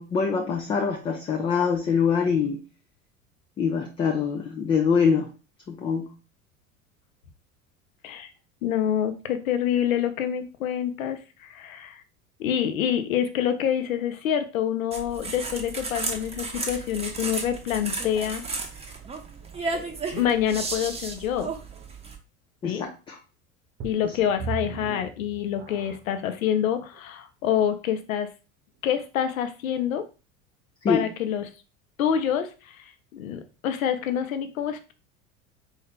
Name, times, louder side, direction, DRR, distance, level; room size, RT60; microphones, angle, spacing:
voice 1, 0.0-2.6 3.6-5.3 5.7-6.1 22.6-23.2 30.8-31.0, left 6 dB, 15° left, 2 dB, 0.3 m, -24 dB
voice 2, 8.6-12.0 12.4-18.4 19.7-19.9 20.1-21.5 22.6-22.9 23.8-28.3 28.8-30.0 30.9-31.5 32.0-34.9, left 9 dB, 65° left, 9 dB, 0.8 m, -27 dB
sound 1, 14.9-22.2, right 3 dB, 15° right, 0.7 m, -34 dB
sound 2, 23.8-26.2 26.9-27.0 27.6-27.7, right 5 dB, 45° right, 0.9 m, -37 dB
4.3 x 2.7 x 3.6 m, 0.32 s
figure-of-eight pair, 75°, 44 cm